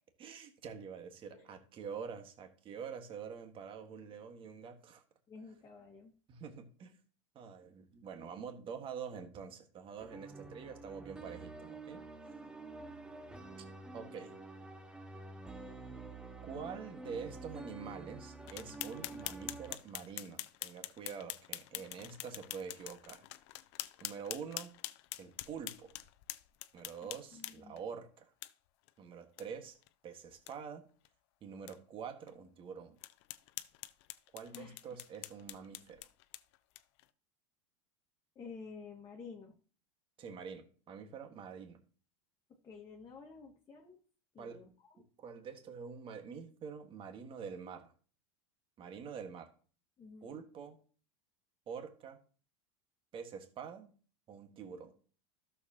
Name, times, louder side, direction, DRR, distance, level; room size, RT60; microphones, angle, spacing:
voice 1, 0.2-5.0 6.3-7.0 7.3-12.1 13.9-14.4 16.4-23.2 24.0-24.7 25.2-25.9 26.7-28.3 29.0-29.8 30.0-30.8 31.4-33.0 34.3-36.0 40.2-41.8 44.4-44.6 45.2-47.9 48.8-49.5 50.2-50.8 51.7-52.2 53.1-53.9 54.3-54.9, right 6 dB, 35° right, 6 dB, 1.6 m, -46 dB
voice 2, 5.3-6.1 12.4-12.5 12.8-13.1 21.7-22.1 27.0-27.8 34.5-34.7 38.3-39.6 42.6-44.0 44.3-45.0 50.0-50.3, left 5 dB, 25° left, -1 dB, 1.6 m, -52 dB
sound 1, 10.0-19.7, right 3 dB, 5° right, 0.8 m, -48 dB
sound 2, 18.5-27.8 28.4-28.5 28.9-29.0 29.4-29.5 29.8-29.9 30.3-30.5 31.0-31.1 31.7-31.8 32.3-32.4 33.0-37.0, left 18 dB, 65° left, 0.6 m, -45 dB
12.5 x 6.9 x 2.9 m, 0.40 s
supercardioid pair, 120°, 15 cm